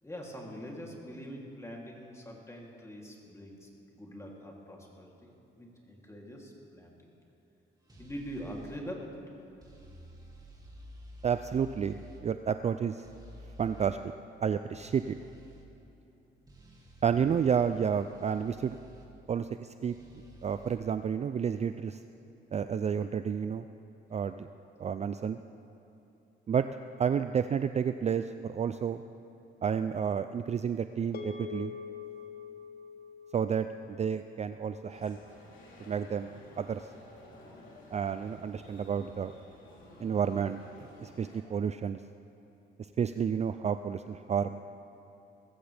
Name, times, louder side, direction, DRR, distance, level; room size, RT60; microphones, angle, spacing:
voice 1, 0.0-7.0 8.0-9.1 24.1-24.6, equal, 15° left, -2 dB, 3.0 m, -44 dB
sound 1, 7.9-8.8 9.6-12.2 13.0-13.9 14.7-15.7 16.5-19.1 19.9-20.7, equal, 20° right, 2.4 m, -51 dB
voice 2, 11.2-13.0 13.6-14.1 14.4-15.1 17.0-18.8 19.3-19.9 20.4-22.0 22.5-23.7 24.1-24.5 24.8-25.4 26.5-26.7 27.0-29.0 29.6-31.7 33.3-33.7 34.0-35.2 35.9-36.8 37.9-39.3 40.0-42.0 43.0-44.6, right 7 dB, 35° right, 10 dB, 0.4 m, -30 dB
sound 2, 31.1-35.6, left 6 dB, 50° left, 1.2 m, -45 dB
sound 3, 34.9-41.4, left 1 dB, 75° left, 3.4 m, -53 dB
20.5 x 15.0 x 3.4 m, 3.0 s
cardioid pair, 90°, 20 cm